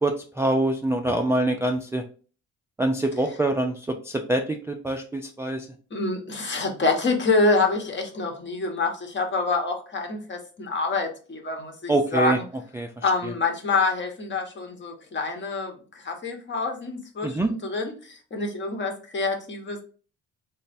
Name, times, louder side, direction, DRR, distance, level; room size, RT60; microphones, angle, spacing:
voice 1, 0.0-2.0 2.8-5.7 11.9-12.4 12.7-13.3 17.2-17.5, right 2 dB, 10° right, 2 dB, 0.3 m, -25 dB
voice 2, 5.9-12.4 13.0-19.8, left 3 dB, 40° left, 3 dB, 1.0 m, -26 dB
3.3 x 2.1 x 4.0 m, 0.39 s
cardioid pair, 90°, 30 cm